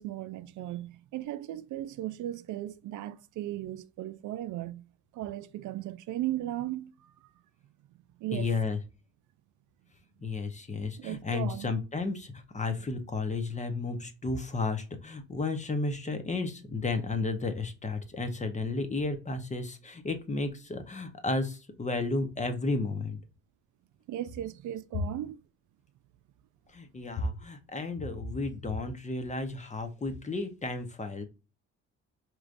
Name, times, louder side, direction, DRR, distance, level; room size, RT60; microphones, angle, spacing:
voice 1, 0.0-4.8 5.1-7.3 8.2-8.5 10.3-10.5 11.0-11.7 24.1-25.4, right 14 dB, 75° right, 0.5 m, -36 dB
voice 2, 8.3-8.8 10.2-23.2 26.7-31.2, left 3 dB, 25° left, 0.9 m, -33 dB
4.9 x 3.0 x 2.5 m
cardioid pair, 90°, 30 cm